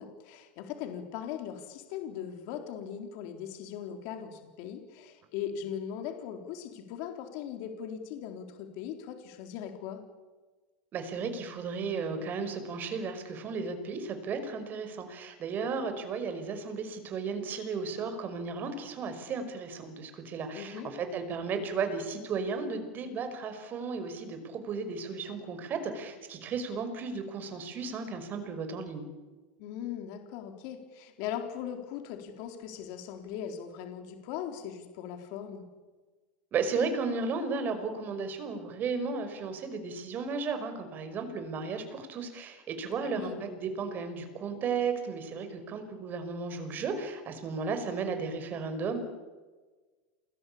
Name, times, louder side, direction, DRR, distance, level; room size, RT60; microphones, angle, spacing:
voice 1, 0.0-10.0 20.5-20.9 29.6-35.6 43.0-43.4, left 9 dB, 55° left, 5 dB, 4.1 m, -39 dB
voice 2, 10.9-29.1 36.5-49.0, right 4 dB, 30° right, 8 dB, 5.5 m, -34 dB
28.5 x 21.5 x 8.7 m, 1.3 s
supercardioid pair, 150°, 6 cm